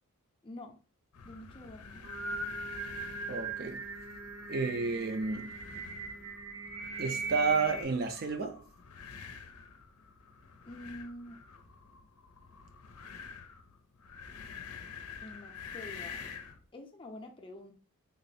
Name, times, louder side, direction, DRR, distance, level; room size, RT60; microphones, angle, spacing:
voice 1, 0.4-0.8 1.2-2.0 10.6-11.4 15.2-16.2 16.7-17.7, left 1 dB, 20° left, 0.5 m, -47 dB
sound 1, 1.1-16.6, left 6 dB, 85° left, 0.6 m, -48 dB
Singing, 1.9-7.8, right 3 dB, 85° right, 1.6 m, -40 dB
voice 2, 3.3-3.8 4.5-5.5 7.0-8.6, right 4 dB, 45° right, 0.4 m, -31 dB
3.7 x 2.0 x 4.0 m
head